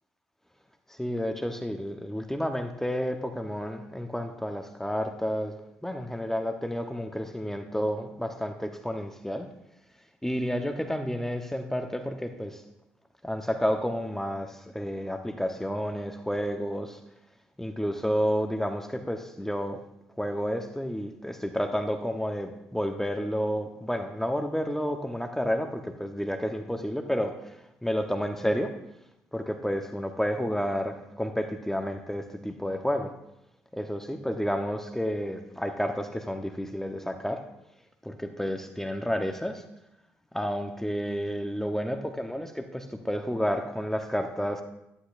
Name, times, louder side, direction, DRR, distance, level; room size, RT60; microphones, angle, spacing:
voice 1, 0.9-9.5 10.2-12.6 13.2-17.0 17.6-19.8 20.2-28.7 29.3-33.1 33.7-37.4 38.0-39.6 40.3-44.6, equal, 5° left, 5 dB, 1.1 m, -30 dB
11.5 x 10.5 x 2.7 m, 0.86 s
hypercardioid pair, 45°, 7 cm